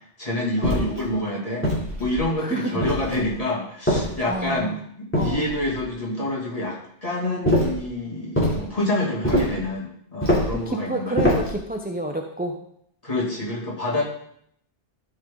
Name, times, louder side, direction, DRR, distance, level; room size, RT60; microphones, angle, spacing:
voice 1, 0.2-1.7 2.0-6.8 7.0-11.3 13.0-14.0, left 1 dB, 30° left, -5 dB, 2.6 m, -27 dB
sound 1, 0.6-1.0 1.6-2.3 2.8-3.3 3.9-4.5 5.1-5.8 7.4-7.8 8.3-8.6 9.2-9.6 10.2-10.6 11.2-11.6, equal, 10° left, 3.0 m, -23 dB
voice 2, 2.4-2.8 4.3-4.7 5.1-5.5 10.7-12.6, right 1 dB, 10° right, 2 dB, 0.6 m, -29 dB
13.0 x 5.7 x 3.8 m, 0.69 s
omnidirectional pair, 1.2 m